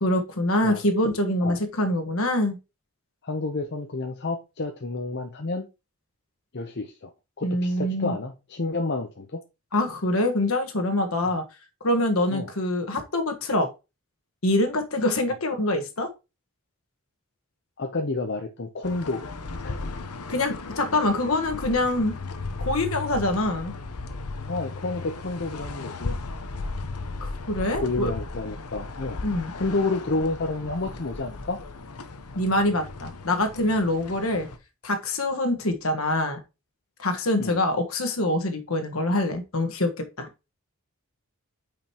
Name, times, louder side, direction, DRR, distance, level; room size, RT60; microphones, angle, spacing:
voice 1, 0.0-2.6 7.4-8.1 9.7-11.4 11.8-13.7 14.4-16.1 20.3-22.1 22.6-23.7 27.2-28.1 29.2-29.5 32.3-34.5 34.8-36.4 37.0-40.3, left 1 dB, 65° left, 1.4 m, -25 dB
voice 2, 3.2-5.7 6.5-7.1 7.4-9.4 12.3-12.5 17.8-19.2 19.6-19.9 24.5-26.2 27.8-29.2 29.5-31.6 37.4-37.6, left 3 dB, 50° left, 0.7 m, -30 dB
sound 1, 18.8-34.6, left 3 dB, 85° left, 0.9 m, -36 dB
8.8 x 5.1 x 2.9 m
head